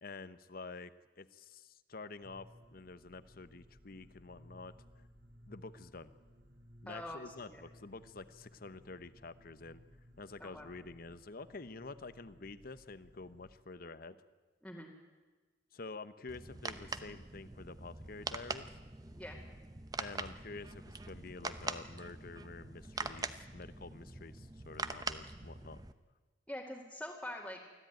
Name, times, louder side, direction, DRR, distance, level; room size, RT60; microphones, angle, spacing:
voice 1, 0.0-4.7 5.5-6.1 6.8-9.8 10.2-14.2 15.7-18.7 20.0-25.8, left 3 dB, 50° left, 14 dB, 0.9 m, -48 dB
sound 1, 2.2-13.5, equal, 70° right, 3.5 m, -60 dB
voice 2, 6.9-7.6 10.4-10.7 14.6-14.9 19.1-19.4 26.5-27.6, left 1 dB, 5° left, -4 dB, 2.1 m, -44 dB
sound 2, 16.3-25.9, right 3 dB, 20° right, 0.8 m, -43 dB
24.0 x 15.5 x 9.2 m, 1.3 s
head